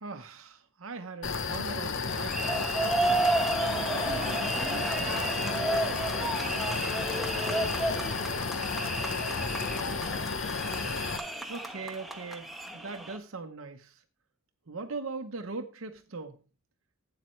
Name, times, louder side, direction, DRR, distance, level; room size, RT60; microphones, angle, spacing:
voice 1, 0.0-2.6 11.5-14.0 14.7-16.4, right 3 dB, 70° right, 0.9 m, -40 dB
sound 1, 1.2-11.2, left 4 dB, 65° left, 0.9 m, -32 dB
sound 2, 2.1-13.2, right 2 dB, ahead, 1.1 m, -32 dB
voice 2, 3.8-9.6 10.2-10.3, right 1 dB, 30° right, 1.4 m, -45 dB
12.0 x 8.8 x 3.2 m
head